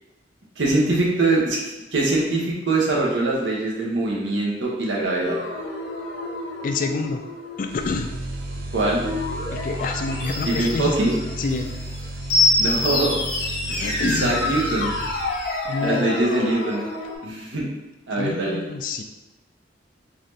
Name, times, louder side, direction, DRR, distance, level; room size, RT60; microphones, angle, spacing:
voice 1, 0.6-1.6 1.9-5.4 8.7-9.0 10.4-11.1 12.6-13.2 13.7-13.8 14.1-14.9 15.8-16.8 17.2-17.7 18.1-18.6, right 2 dB, 85° right, -3 dB, 0.9 m, -23 dB
sound 1, 5.2-17.1, left 2 dB, 80° left, 1.3 m, -27 dB
voice 2, 6.6-7.2 7.6-8.1 9.5-11.0 11.4-11.7 13.7-14.3 15.6-16.1 18.2-19.0, left 4 dB, 45° left, 6 dB, 0.3 m, -27 dB
sound 2, 7.7-15.7, right 1 dB, 55° right, 0.5 m, -33 dB
4.0 x 2.6 x 3.2 m, 1.0 s
head